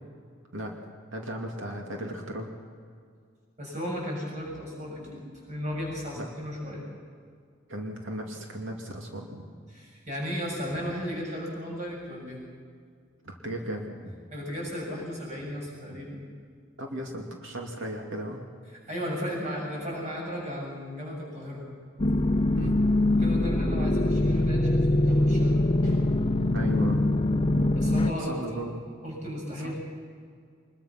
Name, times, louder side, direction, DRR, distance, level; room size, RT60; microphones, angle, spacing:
voice 1, 1.1-2.5 6.2-6.3 7.7-9.5 13.2-14.1 16.8-18.4 22.6-22.8 26.5-27.0 28.2-28.8 29.6-29.7, right 1 dB, 75° right, 1 dB, 2.5 m, -36 dB
voice 2, 3.6-6.8 9.7-12.4 14.3-16.2 18.9-21.6 23.1-26.0 27.7-28.6 29.0-29.7, equal, 35° right, -3 dB, 7.4 m, -35 dB
sound 1, 22.0-28.1, left 1 dB, 25° left, 0.7 m, -23 dB
24.5 x 21.5 x 6.0 m, 2.1 s
head